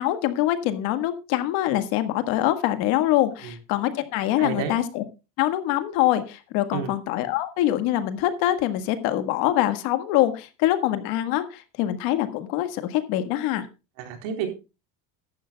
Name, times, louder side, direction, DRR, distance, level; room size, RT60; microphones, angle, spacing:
voice 1, 0.0-5.0 5.4-13.7, left 13 dB, 65° left, 9 dB, 1.7 m, -24 dB
voice 2, 4.4-4.7 6.7-6.9 14.0-14.5, right 7 dB, 80° right, 4 dB, 4.0 m, -30 dB
15.0 x 11.5 x 2.3 m, 0.29 s
cardioid pair, 170°, 38 cm